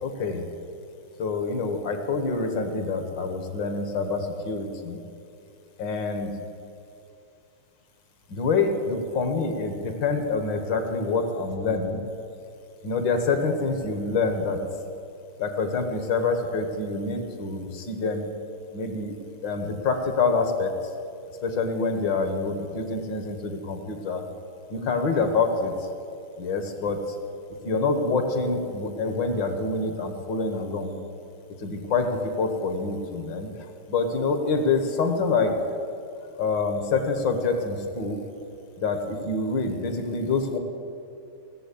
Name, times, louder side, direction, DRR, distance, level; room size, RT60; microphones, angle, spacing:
voice 1, 0.0-0.5 1.2-5.0 5.8-6.4 8.3-12.0 12.8-14.6 15.4-18.3 18.7-19.1 19.4-20.7 21.4-24.2 24.7-25.9 26.4-27.2 27.6-31.0 31.6-35.5 36.4-38.2 38.8-40.6, left 4 dB, 60° left, 6 dB, 1.7 m, -26 dB
17.0 x 7.4 x 8.3 m, 2.6 s
omnidirectional pair, 2.4 m